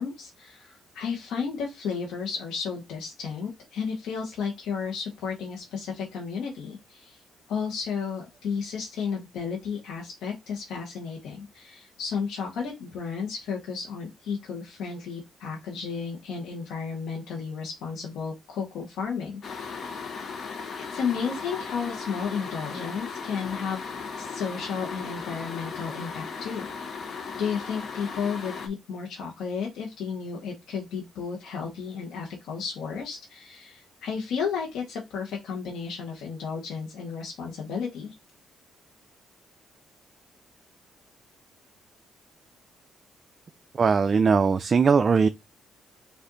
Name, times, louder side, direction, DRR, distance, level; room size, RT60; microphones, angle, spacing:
voice 1, 0.0-7.2 7.5-19.8 20.8-26.7 27.4-38.1, left 6 dB, 85° left, 1.0 m, -33 dB
sound 1, 19.4-28.7, left 5 dB, 55° left, 0.9 m, -37 dB
voice 2, 43.8-45.3, right 5 dB, 40° right, 0.3 m, -20 dB
5.1 x 2.5 x 3.8 m
cardioid pair, 90°, 0 cm